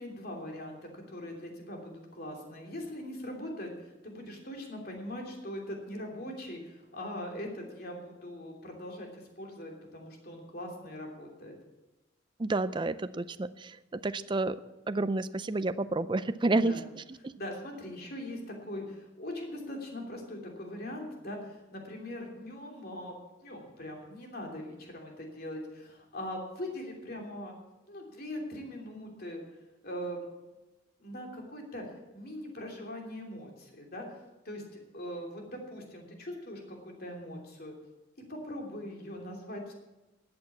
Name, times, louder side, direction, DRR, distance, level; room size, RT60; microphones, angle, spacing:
voice 1, 0.0-11.6 16.5-16.8 17.3-23.1 23.4-27.6 27.9-29.4 29.8-30.3 31.0-31.8 32.1-34.1 34.4-34.6 34.9-37.7 38.3-39.7, left 1 dB, 50° left, 1 dB, 3.0 m, -41 dB
voice 2, 12.4-14.6 14.9-16.8, right 2 dB, 25° right, 13 dB, 0.4 m, -30 dB
13.5 x 8.8 x 7.1 m, 1.0 s
head